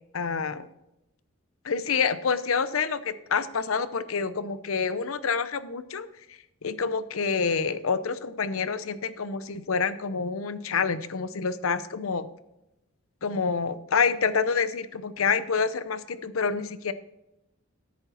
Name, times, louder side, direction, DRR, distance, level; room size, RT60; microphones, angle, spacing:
voice 1, 0.1-0.7 1.6-6.1 6.6-12.3 13.2-16.9, left 5 dB, 85° left, 14 dB, 0.7 m, -27 dB
10.0 x 8.3 x 4.1 m, 0.91 s
head